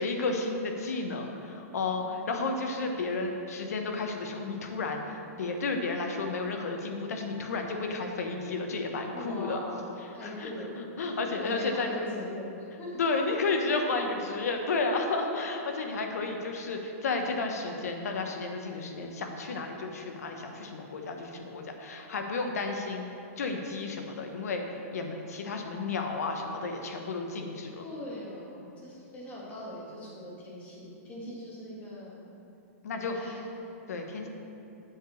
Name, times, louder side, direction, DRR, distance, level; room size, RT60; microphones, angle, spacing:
voice 1, 0.0-9.6 10.0-11.9 13.0-23.1 23.4-24.6 24.9-27.8 32.8-33.2 33.9-34.3, left 3 dB, 85° left, 3 dB, 1.1 m, -32 dB
voice 2, 9.1-10.8 11.4-12.5 12.8-13.0 27.8-32.2 33.1-33.4, left 1 dB, 15° left, -5 dB, 1.9 m, -41 dB
7.8 x 4.9 x 6.4 m, 2.8 s
hypercardioid pair, 155°, 8 cm